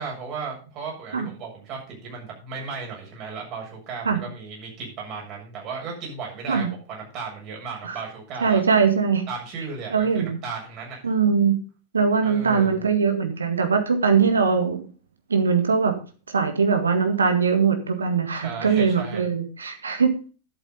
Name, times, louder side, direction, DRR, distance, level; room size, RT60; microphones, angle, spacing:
voice 1, 0.0-8.6 9.3-11.0 12.2-12.8 18.4-19.3, right 5 dB, 40° right, 0 dB, 7.1 m, -35 dB
voice 2, 8.4-9.3 9.9-10.4 11.0-11.6 11.9-14.8 15.3-15.9 16.3-20.3, right 5 dB, 75° right, 7 dB, 1.9 m, -21 dB
11.5 x 8.3 x 5.5 m, 0.36 s
figure-of-eight pair, 90°, 0 cm